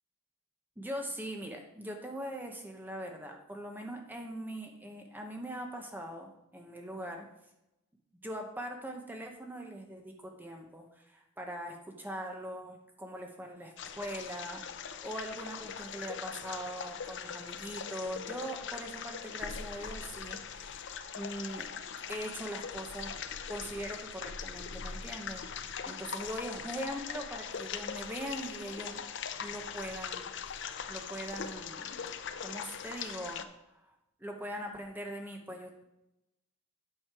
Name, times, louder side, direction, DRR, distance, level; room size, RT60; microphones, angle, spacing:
voice 1, 0.8-7.3 8.1-21.7 22.1-23.1 23.5-29.0 29.4-32.1 32.4-33.4 33.9-34.0 34.2-35.8, equal, 10° right, 2 dB, 0.8 m, -41 dB
sound 1, 13.8-33.4, left 7 dB, 55° left, 0.6 m, -41 dB
8.9 x 6.3 x 4.7 m, 0.87 s
head